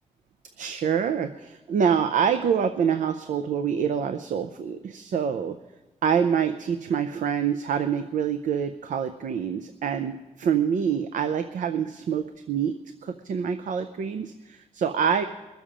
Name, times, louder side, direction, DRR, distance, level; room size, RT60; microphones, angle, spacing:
voice 1, 0.6-5.6 6.0-12.7 13.0-15.2, right 7 dB, 80° right, 9 dB, 0.6 m, -26 dB
21.5 x 7.2 x 5.0 m, 1.2 s
cardioid pair, 90°, 13 cm